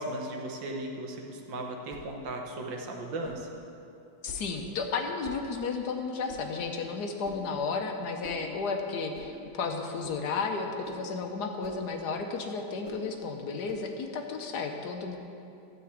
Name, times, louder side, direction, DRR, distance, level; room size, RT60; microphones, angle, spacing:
voice 1, 0.0-3.5, right 1 dB, 75° right, 1 dB, 1.8 m, -36 dB
sound 1, 1.9-2.1 3.2-3.4 4.2-4.5 5.2-5.5 6.3-6.5 7.2-7.5 8.2-8.4 9.1-9.3 10.0-10.3 10.8-11.0 11.6-11.8 12.8-13.0 13.6-13.9, left 1 dB, 40° left, 2.1 m, -46 dB
voice 2, 4.2-15.2, left 4 dB, 65° left, 4 dB, 1.3 m, -33 dB
12.5 x 4.8 x 8.5 m, 2.7 s
omnidirectional pair, 2.0 m